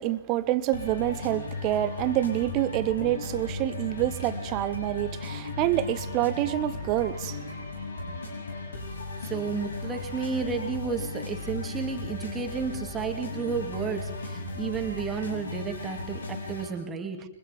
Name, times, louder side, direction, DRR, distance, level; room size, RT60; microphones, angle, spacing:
voice 1, 0.0-7.5, right 14 dB, 30° right, 1.3 m, -27 dB
sound 1, 0.7-16.7, left 3 dB, 70° left, 6.9 m, -36 dB
voice 2, 9.2-17.2, right 5 dB, 15° right, 2.8 m, -32 dB
29.5 x 25.0 x 3.7 m
figure-of-eight pair, 115°, 0 cm